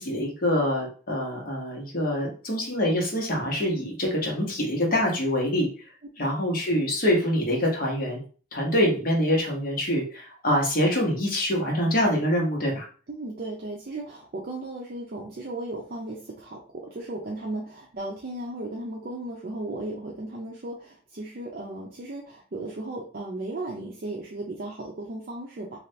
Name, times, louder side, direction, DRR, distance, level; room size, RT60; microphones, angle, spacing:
voice 1, 0.0-5.7 6.2-8.2 8.5-12.8, equal, 55° left, -1 dB, 1.0 m, -25 dB
voice 2, 13.1-25.8, right 2 dB, 55° right, -2 dB, 0.5 m, -36 dB
2.7 x 2.4 x 3.2 m, 0.40 s
head